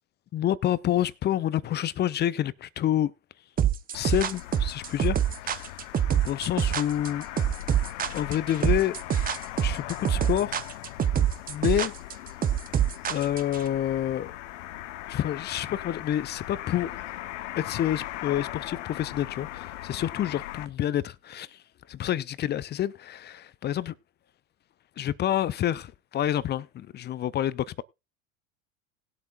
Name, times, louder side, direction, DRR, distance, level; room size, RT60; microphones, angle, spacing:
voice 1, 0.3-3.1 3.9-5.2 6.2-7.3 8.1-8.9 9.6-10.7 11.5-11.9 13.1-14.4 15.1-17.0 17.6-23.9 25.0-27.8, left 11 dB, 25° left, 0.6 m, -28 dB
sound 1, 3.6-13.6, right 10 dB, 20° right, 0.7 m, -25 dB
sound 2, 3.9-20.7, left 15 dB, 65° left, 1.0 m, -39 dB
19.5 x 8.1 x 2.4 m
hypercardioid pair, 80°, 39 cm